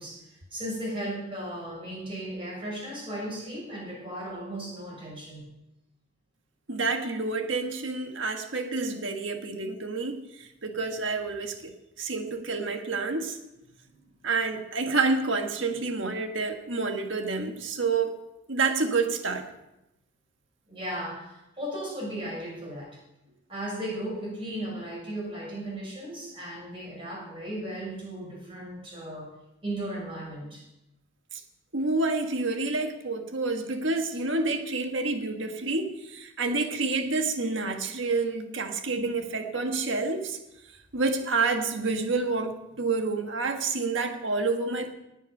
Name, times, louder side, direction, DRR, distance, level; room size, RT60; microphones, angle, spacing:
voice 1, 0.0-5.5 13.9-14.1 20.7-22.9 23.5-29.3 29.6-30.6, right 1 dB, 25° right, -4 dB, 6.6 m, -36 dB
voice 2, 6.7-11.7 12.0-13.4 14.2-18.1 18.5-19.5 31.3-31.4 31.7-40.4 40.9-44.9, right 3 dB, 70° right, 5 dB, 1.6 m, -28 dB
19.0 x 7.3 x 5.5 m, 0.89 s
head